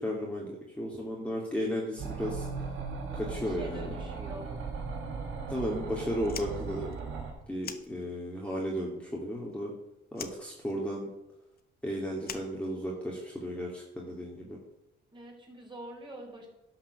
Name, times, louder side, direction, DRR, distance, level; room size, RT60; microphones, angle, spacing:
voice 1, 0.0-2.7 3.1-3.9 5.5-6.9 7.5-9.7 10.1-11.1 11.8-14.6, equal, 5° left, -3 dB, 2.8 m, -34 dB
sound 1, 2.0-7.3, right 4 dB, 85° right, 3.3 m, -37 dB
voice 2, 3.4-4.5 15.1-16.5, right 1 dB, 25° right, -1 dB, 4.7 m, -45 dB
Fire, 6.2-8.5 8.8-9.8 10.1-13.3, left 7 dB, 50° left, 1.1 m, -45 dB
11.5 x 6.0 x 6.3 m, 0.92 s
cardioid pair, 90°, 20 cm